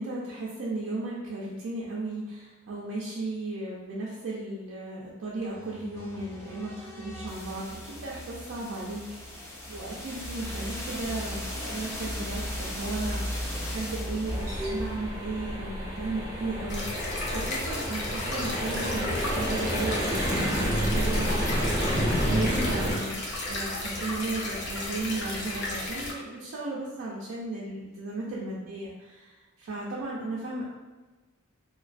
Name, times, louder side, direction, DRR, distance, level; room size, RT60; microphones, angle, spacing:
voice 1, 0.0-9.4 9.7-21.6 22.1-30.6, right 2 dB, 60° right, -5 dB, 0.4 m, -35 dB
sound 1, 5.5-17.4, equal, 10° left, 0.3 m, -37 dB
sound 2, 14.3-23.0, equal, 15° right, 0.7 m, -29 dB
sound 3, 16.7-26.1, left 2 dB, 55° left, 0.6 m, -34 dB
2.5 x 2.3 x 2.4 m, 1.2 s
head